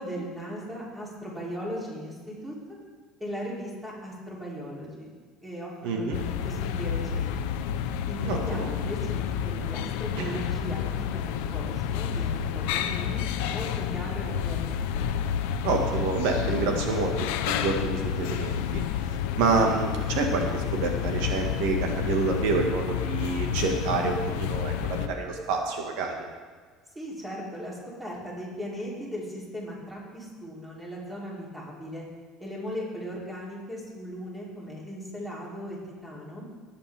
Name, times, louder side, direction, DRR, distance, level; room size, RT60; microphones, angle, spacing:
voice 1, 0.0-2.6 3.2-5.1 5.4-6.2 6.4-7.4 8.1-15.1 26.9-32.0 32.4-36.4, equal, 10° right, -5 dB, 3.2 m, -38 dB
voice 2, 5.8-6.2 8.2-8.7 10.2-10.3 15.6-17.1 17.5-18.8 19.4-26.2, right 4 dB, 80° right, 2 dB, 1.6 m, -28 dB
sound 1, 6.1-25.1, left 9 dB, 90° left, 0.7 m, -30 dB
19.5 x 8.5 x 3.5 m, 1.5 s
cardioid pair, 145°, 0 cm